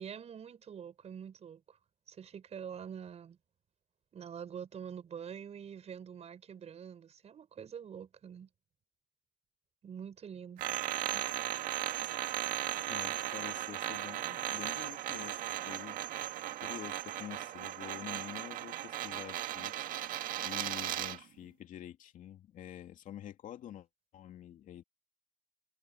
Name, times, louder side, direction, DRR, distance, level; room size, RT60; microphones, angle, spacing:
voice 1, 0.0-1.8 2.1-3.4 4.1-8.5 9.8-10.6, right 8 dB, 45° right, 5.4 m, -46 dB
sound 1, 10.6-21.2, right 13 dB, 65° right, 1.8 m, -37 dB
voice 2, 12.9-16.0 16.6-19.8 20.4-23.9 24.1-24.8, left 11 dB, 55° left, 2.6 m, -47 dB
supercardioid pair, 90°, 16 cm